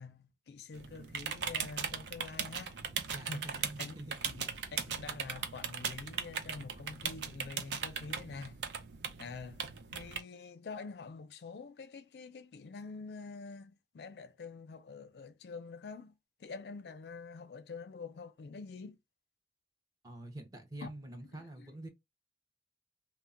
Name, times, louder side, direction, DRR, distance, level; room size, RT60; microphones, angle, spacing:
voice 1, 0.0-2.8 3.2-8.6 9.2-9.7 9.9-19.0 20.8-20.9 21.3-21.7, left 4 dB, 70° left, 0.4 m, -47 dB
sound 1, 0.7-10.2, right 6 dB, 80° right, 0.5 m, -39 dB
voice 2, 3.1-4.2 20.0-21.9, right 1 dB, 20° right, 0.6 m, -46 dB
2.2 x 2.0 x 3.6 m
head